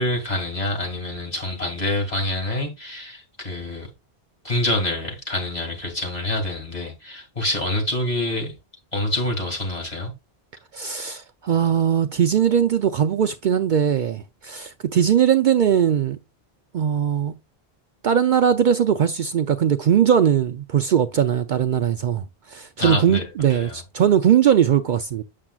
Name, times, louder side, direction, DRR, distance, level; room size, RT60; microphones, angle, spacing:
voice 1, 0.0-3.9 4.4-8.5 8.9-10.1 22.8-23.8, left 1 dB, 40° left, 2.3 m, -26 dB
voice 2, 10.7-16.2 16.7-17.3 18.0-25.2, right 9 dB, 60° right, 0.6 m, -20 dB
7.4 x 6.7 x 2.3 m
omnidirectional pair, 1.0 m